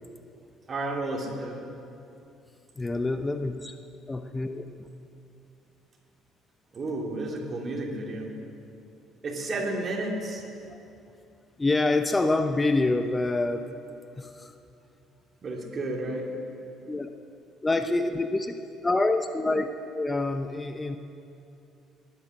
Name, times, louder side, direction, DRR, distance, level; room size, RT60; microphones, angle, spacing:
voice 1, 0.7-1.6 6.7-8.3 9.2-10.4 15.4-16.3, right 2 dB, 40° right, 1 dB, 2.8 m, -32 dB
voice 2, 2.8-3.8 4.1-4.9 10.7-10.8 11.6-13.6 14.2-14.5 16.9-17.1 17.6-18.6 18.8-19.7 19.9-21.0, left 2 dB, 20° left, 8 dB, 0.8 m, -26 dB
19.5 x 9.9 x 6.4 m, 2.7 s
hypercardioid pair, 50°, 0 cm